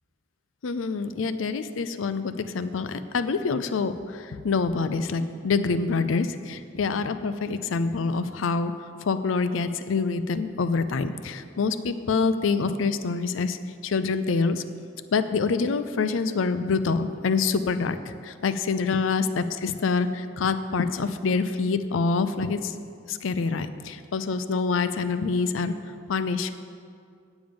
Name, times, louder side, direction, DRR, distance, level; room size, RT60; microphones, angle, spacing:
voice 1, 0.6-8.7 9.0-13.6 13.8-14.6 15.1-22.7 23.1-25.7 26.1-26.5, left 4 dB, 90° left, 11 dB, 0.5 m, -26 dB
9.1 x 7.1 x 5.2 m, 2.3 s
head